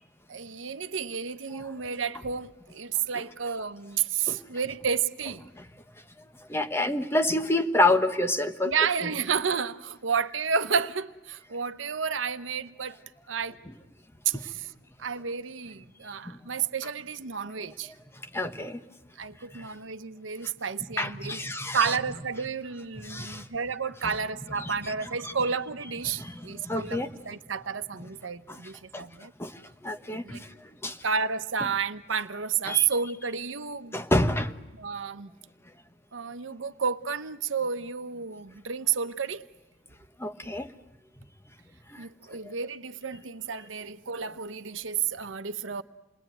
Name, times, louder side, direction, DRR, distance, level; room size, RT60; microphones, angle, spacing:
voice 1, 0.3-5.4 8.6-13.0 13.3-13.6 14.2-14.7 15.0-17.9 19.2-21.4 21.7-29.3 30.1-30.4 31.0-34.0 34.8-35.3 36.1-39.4 42.0-45.8, right 6 dB, 90° right, 12 dB, 1.0 m, -31 dB
voice 2, 6.5-8.7 14.3-14.4 16.3-16.4 18.3-18.8 21.0-21.8 23.0-23.4 24.6-24.7 25.2-25.3 26.1-27.1 28.5-28.6 28.9-29.0 29.4-29.5 29.8-30.4 30.8-31.0 32.7-32.9 33.9-34.5 40.2-40.7, left 2 dB, 15° left, 7 dB, 1.2 m, -27 dB
28.5 x 21.0 x 9.2 m, 1.1 s
head